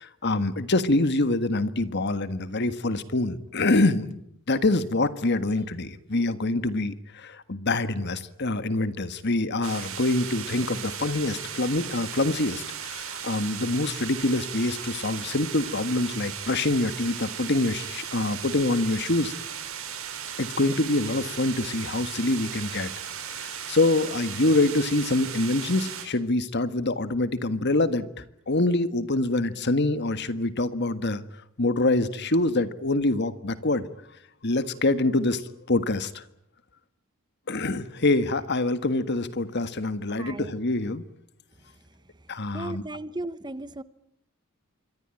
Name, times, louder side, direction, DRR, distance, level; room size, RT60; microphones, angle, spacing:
voice 1, 0.0-4.2 4.5-19.3 20.4-22.9 23.3-31.2 31.6-33.9 34.4-35.4 35.7-36.2 37.5-41.0 42.3-42.8, left 2 dB, 55° left, 12 dB, 1.6 m, -25 dB
sound 1, 9.6-26.0, right 8 dB, 75° right, 6.2 m, -36 dB
voice 2, 40.1-40.5 42.5-43.8, right 2 dB, 20° right, 14 dB, 1.1 m, -35 dB
27.0 x 23.0 x 9.0 m, 0.74 s
head